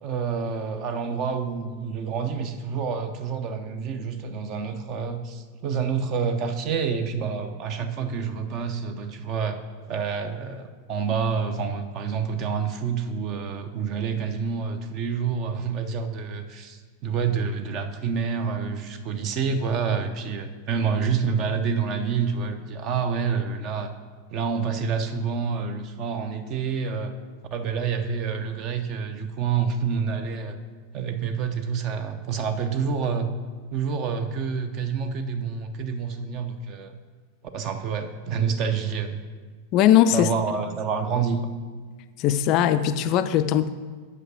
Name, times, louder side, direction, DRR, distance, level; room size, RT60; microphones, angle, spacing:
voice 1, 0.0-9.6 9.9-23.9 24.3-27.1 27.5-30.6 30.9-33.3 33.7-37.0 37.5-39.2 40.1-41.5, right 6 dB, 40° right, 8 dB, 0.7 m, -28 dB
voice 2, 39.7-40.3 42.2-43.7, left 11 dB, 40° left, 11 dB, 0.3 m, -19 dB
8.0 x 5.5 x 6.0 m, 1.5 s
figure-of-eight pair, 90°, 0 cm